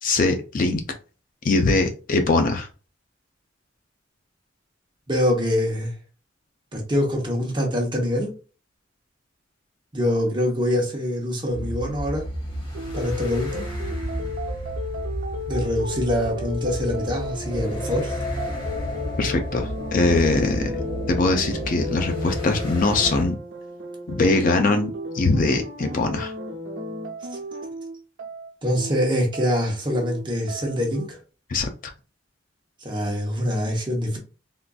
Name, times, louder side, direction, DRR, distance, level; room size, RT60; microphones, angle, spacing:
voice 1, 0.0-0.8 1.4-2.7 19.2-20.8 21.1-23.4 24.1-26.3 31.5-31.7, left 3 dB, 45° left, 0.5 m, -22 dB
voice 2, 5.1-5.9 6.7-8.3 9.9-12.3 12.9-13.6 15.5-18.2 28.6-31.2 32.8-34.2, equal, 25° right, 0.9 m, -24 dB
sound 1, 11.5-23.2, equal, 25° left, 1.0 m, -31 dB
sound 2, 12.7-31.1, left 1 dB, 80° right, 0.8 m, -35 dB
3.7 x 2.5 x 2.3 m
head